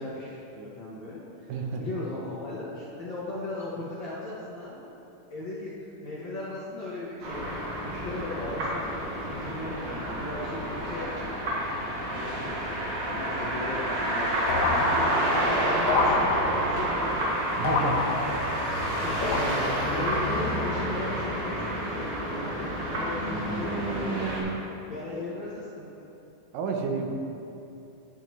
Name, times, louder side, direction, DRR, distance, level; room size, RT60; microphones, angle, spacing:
voice 1, 0.0-4.9 5.3-5.7 6.0-7.5 7.8-11.3 11.8-12.7 13.1-18.4 18.8-24.5 24.9-25.9, left 2 dB, 55° left, -8 dB, 1.3 m, -37 dB
voice 2, 1.5-1.9 17.6-18.0 26.5-27.1, right 4 dB, 85° right, 2 dB, 2.6 m, -30 dB
sound 1, 7.2-24.4, right 1 dB, 60° right, 2.7 m, -29 dB
sound 2, 14.5-15.4 15.9-16.8 17.6-18.7 19.2-19.9, left 3 dB, 75° left, 1.9 m, -28 dB
11.0 x 8.7 x 3.2 m, 2.8 s
omnidirectional pair, 3.8 m